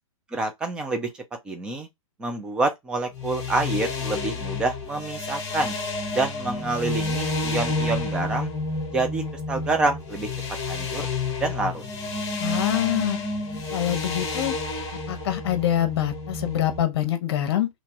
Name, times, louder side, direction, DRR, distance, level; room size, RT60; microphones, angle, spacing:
voice 1, 0.3-1.1 1.4-1.9 2.2-5.8 6.1-8.5 8.9-10.3 10.7-11.1 11.4-11.8, right 3 dB, 5° right, 0.4 m, -27 dB
sound 1, 3.1-16.8, left 3 dB, 15° left, 1.0 m, -30 dB
voice 2, 12.4-13.2 13.7-14.5 15.1-17.7, left 12 dB, 45° left, 0.8 m, -25 dB
3.0 x 2.3 x 4.2 m
hypercardioid pair, 160°, 18 cm